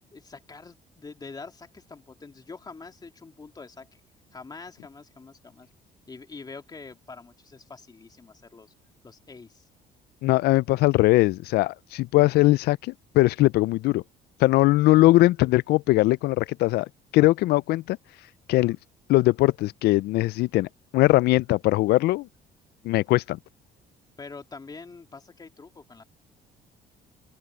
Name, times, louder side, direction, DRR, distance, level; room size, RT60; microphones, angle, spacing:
voice 1, 0.1-3.9 4.3-5.7 6.1-8.7 9.0-9.7 14.9-15.0 24.2-26.0, left 4 dB, 25° left, 2.7 m, -44 dB
voice 2, 10.2-14.0 14.4-16.9 17.1-18.0 18.5-18.8 19.1-22.3 22.8-23.4, left 18 dB, 75° left, 0.4 m, -21 dB
open air
cardioid pair, 110°, 17 cm